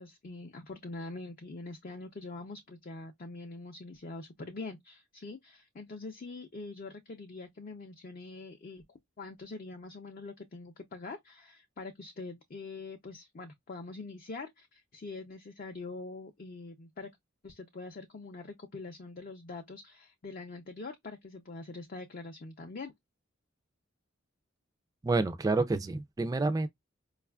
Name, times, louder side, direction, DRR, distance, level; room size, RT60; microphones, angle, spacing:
voice 1, 0.0-17.1 17.4-22.9, left 3 dB, 45° left, 0.5 m, -44 dB
voice 2, 25.0-26.7, right 3 dB, 20° right, 0.3 m, -28 dB
4.8 x 2.4 x 2.2 m
head